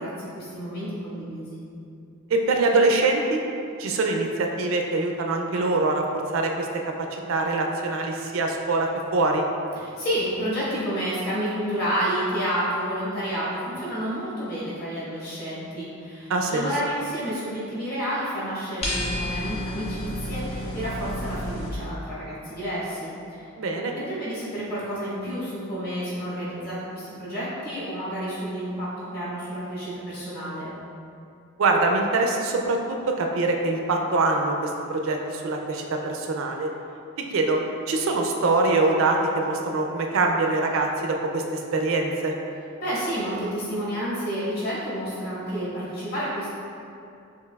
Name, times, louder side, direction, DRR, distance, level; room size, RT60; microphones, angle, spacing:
voice 1, 0.0-1.6 9.7-23.5 23.9-30.7 42.8-46.5, equal, 45° left, -9 dB, 1.3 m, -30 dB
voice 2, 2.3-3.4 3.8-6.7 7.0-9.4 16.3-16.7 23.6-23.9 31.6-36.7 37.3-37.6 37.9-42.3, right 3 dB, 65° right, 2 dB, 0.4 m, -24 dB
sound 1, 18.8-21.7, left 1 dB, 30° left, 0.8 m, -30 dB
6.7 x 2.7 x 2.3 m, 2.6 s
head